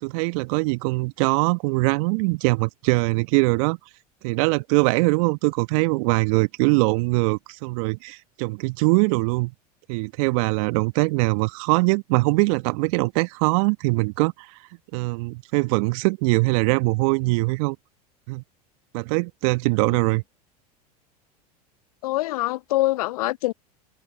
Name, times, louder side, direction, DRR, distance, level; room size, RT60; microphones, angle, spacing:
voice 1, 0.0-3.8 4.2-9.5 9.9-14.3 14.9-17.8 18.3-18.4 18.9-20.2, right 28 dB, 55° right, 1.7 m, -22 dB
voice 2, 22.0-23.5, left 18 dB, 65° left, 0.5 m, -24 dB
figure-of-eight pair, 80°, 20 cm